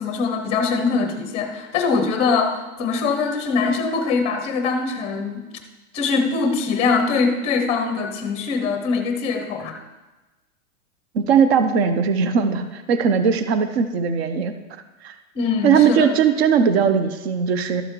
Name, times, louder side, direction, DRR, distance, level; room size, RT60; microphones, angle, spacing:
voice 1, 0.0-5.5 5.9-9.8 15.3-16.1, left 4 dB, 15° left, 6 dB, 0.7 m, -22 dB
voice 2, 11.1-14.5 15.0-15.1 15.6-17.8, right 6 dB, 45° right, 10 dB, 0.7 m, -19 dB
12.5 x 6.2 x 4.6 m, 1.1 s
supercardioid pair, 165°, 43 cm